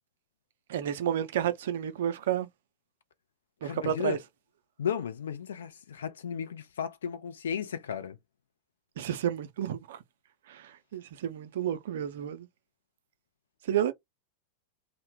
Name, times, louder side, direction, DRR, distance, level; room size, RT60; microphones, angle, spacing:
voice 1, 0.7-2.5 3.6-4.2 9.0-10.0 10.5-12.5 13.7-13.9, right 10 dB, 60° right, 0.4 m, -31 dB
voice 2, 3.6-4.2 4.8-8.2, left 8 dB, 65° left, 0.4 m, -34 dB
2.1 x 2.1 x 3.1 m
figure-of-eight pair, 90°, 0 cm